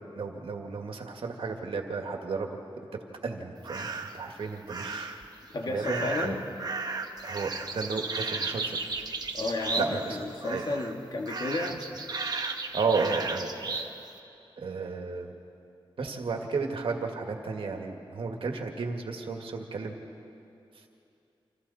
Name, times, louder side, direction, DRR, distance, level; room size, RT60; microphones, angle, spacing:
voice 1, 0.1-2.5 3.2-3.9 4.1-5.2 5.7-6.4 7.2-8.8 9.8-10.2 10.5-10.6 11.7-11.8 12.7-13.8 14.6-15.3 16.0-19.9 20.8-20.9, right 4 dB, 80° right, 3 dB, 2.1 m, -33 dB
sound 1, 3.6-4.2 4.7-5.3 5.8-10.2 10.4-10.9 11.3-13.9, right 3 dB, 45° right, 1.3 m, -34 dB
voice 2, 5.5-6.5 9.3-11.9, left 2 dB, 50° left, 1 dB, 2.1 m, -32 dB
29.0 x 27.0 x 4.3 m, 2.7 s
wide cardioid pair, 145°, 9 cm